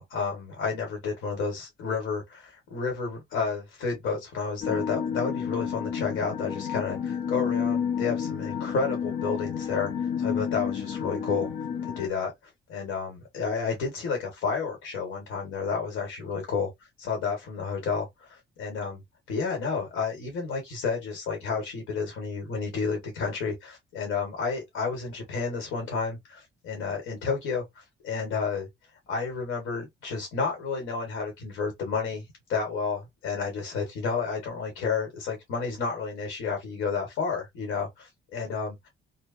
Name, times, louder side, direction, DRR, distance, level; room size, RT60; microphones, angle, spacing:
voice 1, 0.0-9.9 10.2-11.5 11.8-12.3 12.7-16.7 17.0-19.0 19.3-28.7 29.1-38.9, left 5 dB, 90° left, 1.3 m, -31 dB
sound 1, 4.6-12.1, left 7 dB, 60° left, 0.7 m, -30 dB
2.8 x 2.2 x 2.5 m
cardioid pair, 90°, 20 cm